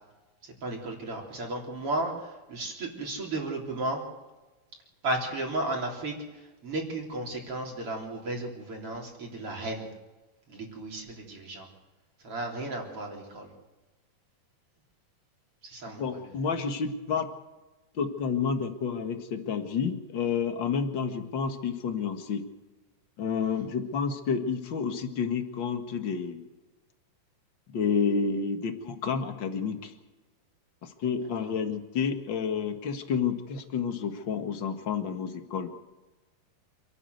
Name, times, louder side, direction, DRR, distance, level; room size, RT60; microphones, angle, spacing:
voice 1, 0.4-4.0 5.0-9.9 10.5-11.7 12.2-13.5 15.6-16.2 31.4-31.5, right 2 dB, 35° right, 0 dB, 4.4 m, -34 dB
voice 2, 16.0-17.3 17.9-22.4 23.2-26.5 27.7-29.9 30.8-35.7, left 6 dB, 45° left, 5 dB, 1.7 m, -30 dB
27.5 x 13.0 x 8.1 m, 1.1 s
omnidirectional pair, 4.4 m